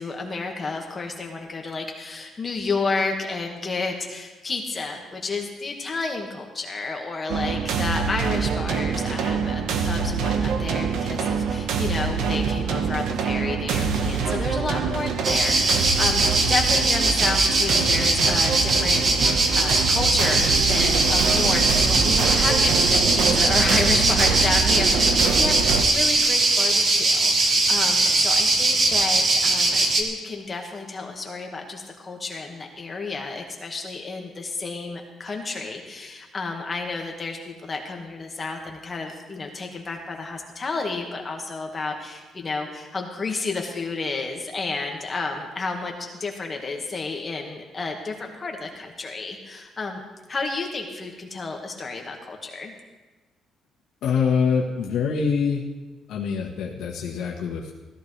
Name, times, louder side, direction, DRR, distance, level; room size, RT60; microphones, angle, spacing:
voice 1, 0.0-45.9 46.2-50.0 50.3-52.7, left 3 dB, 25° left, 2 dB, 1.7 m, -31 dB
sound 1, 7.3-25.8, right 6 dB, 80° right, 1.2 m, -25 dB
sound 2, 15.2-30.0, right 2 dB, 35° right, 1.5 m, -21 dB
voice 2, 54.0-55.6 56.1-57.7, left 6 dB, 85° left, -2 dB, 1.4 m, -24 dB
16.5 x 14.0 x 3.3 m, 1.2 s
cardioid pair, 155°, 0 cm